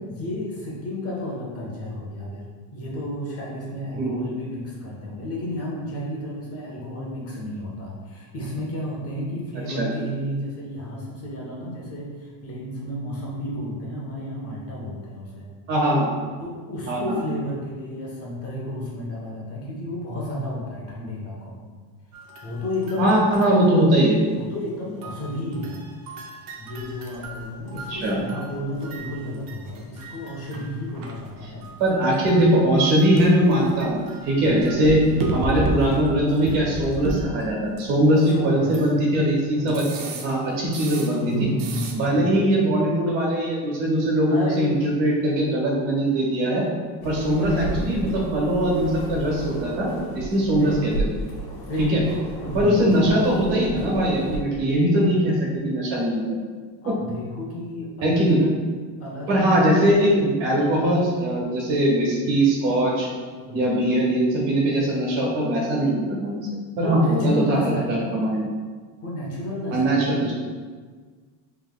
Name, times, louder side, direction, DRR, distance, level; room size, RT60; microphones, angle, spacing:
voice 1, 0.0-15.5 16.4-21.7 22.4-23.3 24.4-25.8 26.6-31.7 34.3-34.5 35.0-35.1 38.2-38.8 39.5-39.7 41.2-42.3 44.3-44.9 47.3-47.8 50.5-50.9 51.7-52.1 52.4-53.0 56.8-58.5 59.0-59.5 63.4-63.6 66.8-68.1 69.0-70.2, left 1 dB, 30° left, -4 dB, 1.0 m, -32 dB
voice 2, 15.7-16.1 16.9-17.2 23.0-24.2 27.9-28.2 31.8-35.0 35.3-41.5 41.9-46.6 47.0-50.9 51.8-52.0 52.5-56.2 58.0-58.4 59.3-63.1 63.5-66.4 66.8-68.4 69.7-70.3, right 1 dB, 80° right, -3 dB, 1.4 m, -21 dB
sound 1, 22.1-24.2 25.0-39.1 39.7-41.3 41.6-41.9, right 2 dB, 50° right, 0.7 m, -34 dB
sound 2, 47.0-54.4, right 1 dB, 80° left, 1.2 m, -33 dB
5.4 x 3.4 x 2.2 m, 1.5 s
cardioid pair, 140°, 45 cm